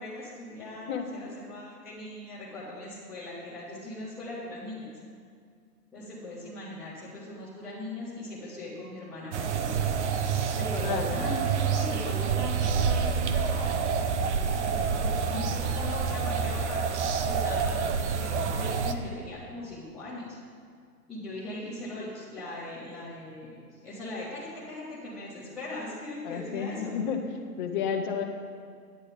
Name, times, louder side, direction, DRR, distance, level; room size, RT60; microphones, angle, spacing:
voice 1, 0.0-4.9 5.9-9.7 10.6-13.9 14.3-20.4 21.1-27.1, left 1 dB, ahead, -14 dB, 0.5 m, -39 dB
sound 1, 9.3-18.9, right 6 dB, 45° right, 0.7 m, -28 dB
voice 2, 10.8-11.2 26.2-27.2 27.6-28.3, left 7 dB, 30° left, 4 dB, 1.0 m, -31 dB
9.4 x 9.1 x 5.1 m, 2.1 s
figure-of-eight pair, 130°, 48 cm